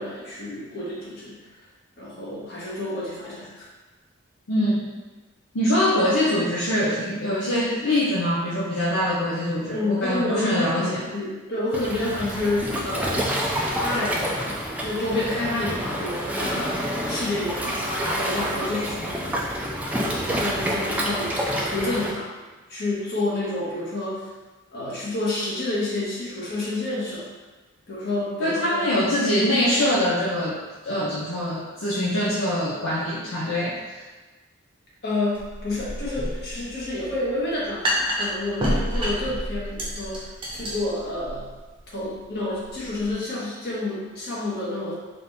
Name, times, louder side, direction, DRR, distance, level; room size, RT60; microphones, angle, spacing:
voice 1, 0.0-1.4 2.0-3.7 9.7-13.3 13.8-19.5 20.2-22.3 22.7-24.3 24.7-27.3 27.9-28.9 35.0-41.5 41.9-44.9, left 2 dB, 50° left, -6 dB, 1.2 m, -29 dB
voice 2, 4.5-4.9 5.5-11.0 28.4-34.0, left 1 dB, 75° left, -6 dB, 0.6 m, -24 dB
Waves surf, 11.7-22.1, equal, 5° right, 0.3 m, -28 dB
sound 1, 35.3-43.1, equal, 25° right, 0.7 m, -30 dB
4.2 x 2.7 x 3.3 m, 1.2 s
head